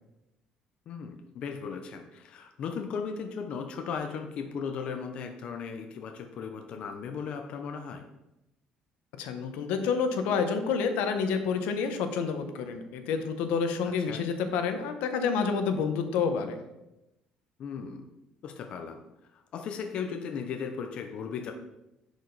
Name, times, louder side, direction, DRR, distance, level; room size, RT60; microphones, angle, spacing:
voice 1, 0.9-8.0 14.0-14.2 17.6-18.0 18.4-19.0 19.3-21.5, left 6 dB, 50° left, 4 dB, 0.8 m, -36 dB
voice 2, 9.2-16.6, left 5 dB, 85° left, 7 dB, 1.1 m, -29 dB
10.5 x 5.0 x 4.1 m, 0.93 s
cardioid pair, 155°, 2 cm